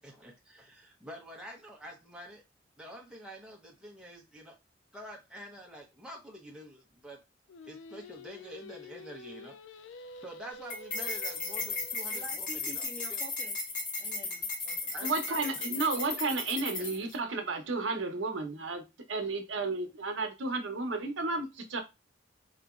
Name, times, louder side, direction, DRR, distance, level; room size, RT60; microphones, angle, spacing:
voice 1, 0.0-2.4 2.8-4.5 4.9-7.2 7.6-9.6 10.2-13.2 14.9-15.4 16.8-16.9, equal, 5° right, 0.9 m, -47 dB
Singing, 7.5-12.6, left 2 dB, 85° left, 0.4 m, -48 dB
sound 1, 10.7-17.1, left 3 dB, 45° left, 1.6 m, -36 dB
voice 2, 12.1-13.5 14.0-14.9, right 1 dB, 15° left, 1.4 m, -48 dB
voice 3, 15.0-18.8 19.1-21.8, right 3 dB, 75° right, 0.8 m, -32 dB
3.9 x 2.9 x 2.4 m
head